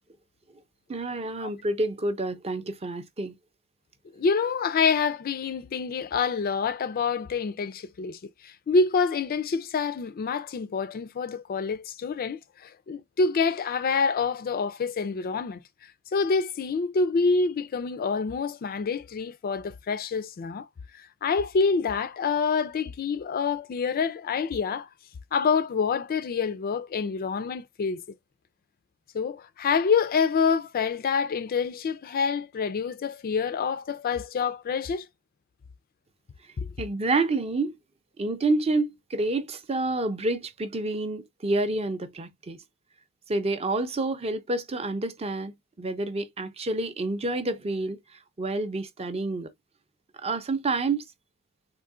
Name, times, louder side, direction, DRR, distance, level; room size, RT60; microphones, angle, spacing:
voice 1, 0.9-3.3 36.8-37.7 38.2-42.6 43.3-48.0 48.4-49.5 50.2-51.0, right 2 dB, 25° right, 0.5 m, -28 dB
voice 2, 4.2-15.6 16.1-20.7 21.2-24.9 25.3-28.0 29.1-35.1 36.6-36.7, left 5 dB, 40° left, 0.3 m, -27 dB
3.7 x 2.5 x 2.4 m
head